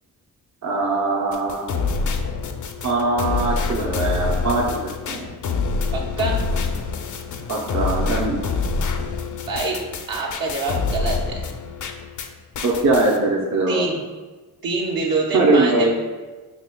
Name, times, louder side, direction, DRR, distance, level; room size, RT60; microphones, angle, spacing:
voice 1, 0.6-1.7 2.8-5.3 7.5-8.4 12.6-13.9 15.3-15.9, right 2 dB, 50° right, -3 dB, 0.7 m, -21 dB
sound 1, 1.3-12.3 12.5-13.2, left 4 dB, 55° left, 0.5 m, -26 dB
voice 2, 5.9-6.4 9.4-9.8 10.1-11.4 13.7-14.0 14.6-15.9, right 3 dB, 70° right, -4 dB, 1.0 m, -25 dB
6.0 x 2.7 x 2.2 m, 1.3 s
cardioid pair, 65°, 37 cm